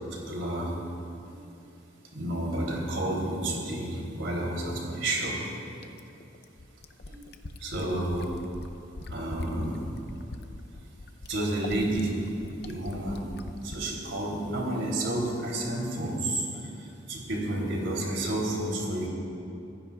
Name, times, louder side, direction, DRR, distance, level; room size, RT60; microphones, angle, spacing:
voice 1, 0.1-0.7 1.3-1.4 2.1-5.4 7.1-7.2 7.6-8.3 9.1-9.8 11.3-12.2 12.6-13.3 13.6-19.1, right 1 dB, 75° right, -2 dB, 3.3 m, -30 dB
Fill (with liquid), 5.8-13.9 15.3-15.4, left 2 dB, 55° left, 0.6 m, -42 dB
26.0 x 15.5 x 2.4 m, 2.7 s
head